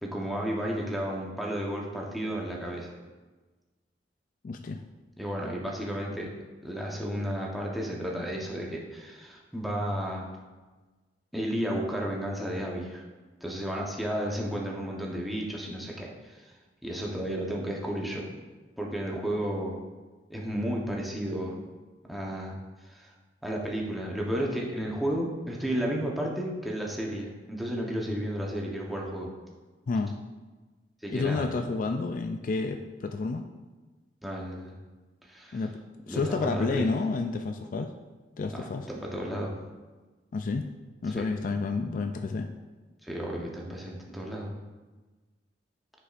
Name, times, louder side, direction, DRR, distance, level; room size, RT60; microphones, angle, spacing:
voice 1, 0.0-3.0 5.2-6.3 6.6-10.3 11.3-13.0 13.4-16.4 16.8-18.3 18.8-19.8 20.3-21.6 22.1-22.6 22.8-23.1 23.4-29.3 31.0-31.5 34.2-34.7 35.2-35.6 36.1-36.9 38.5-39.5 41.1-41.3 43.0-44.5, equal, ahead, -3 dB, 0.9 m, -33 dB
voice 2, 4.4-4.8 29.9-30.1 31.1-33.4 35.5-35.8 36.1-37.9 38.4-38.9 40.3-40.7 41.0-42.5, left 3 dB, 50° left, 6 dB, 0.3 m, -30 dB
9.6 x 5.4 x 2.5 m, 1.3 s
head